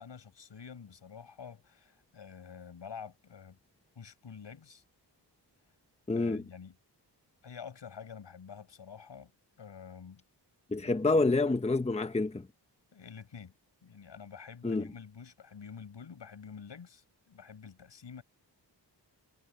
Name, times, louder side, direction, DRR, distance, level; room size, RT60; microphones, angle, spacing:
voice 1, 0.0-3.6 3.9-4.8 6.1-6.8 7.4-9.3 9.6-10.2 10.8-11.4 12.9-13.5 13.8-18.2, left 6 dB, 80° left, 6.5 m, -48 dB
voice 2, 6.1-6.4 10.7-12.5 14.6-14.8, left 3 dB, 15° left, 0.9 m, -28 dB
wide cardioid pair, 155°, 43 cm